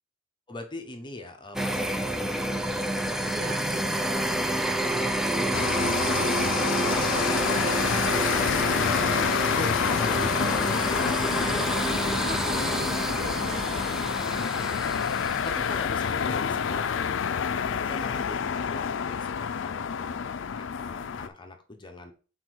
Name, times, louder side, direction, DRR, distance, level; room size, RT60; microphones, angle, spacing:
voice 1, 0.5-3.0 4.9-7.1 8.1-12.2 15.4-22.1, left 2 dB, 25° left, 5 dB, 0.9 m, -41 dB
sound 1, 1.5-16.3, right 1 dB, ahead, 0.5 m, -29 dB
voice 2, 3.2-5.3 12.2-14.7, right 2 dB, 40° right, 5 dB, 1.2 m, -42 dB
sound 2, 5.5-21.3, left 7 dB, 65° left, 0.4 m, -28 dB
6.0 x 4.3 x 4.7 m, 0.36 s
head